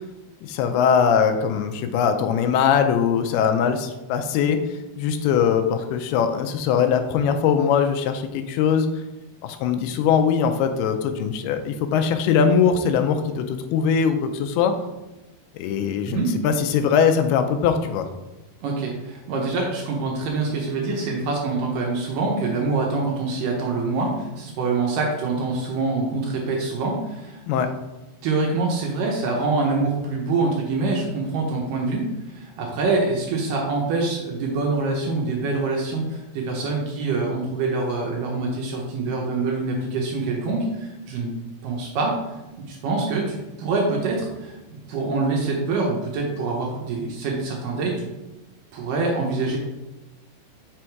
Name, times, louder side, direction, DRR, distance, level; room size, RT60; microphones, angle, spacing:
voice 1, 0.4-4.6 5.0-8.9 9.4-14.7 15.5-18.1 27.5-27.7, left 7 dB, 85° left, 7 dB, 2.5 m, -21 dB
voice 2, 18.6-27.7 28.2-41.3 41.6-42.2 42.7-48.1 48.7-49.6, right 3 dB, 75° right, 0 dB, 2.2 m, -25 dB
6.4 x 3.5 x 4.5 m, 1.1 s
omnidirectional pair, 4.5 m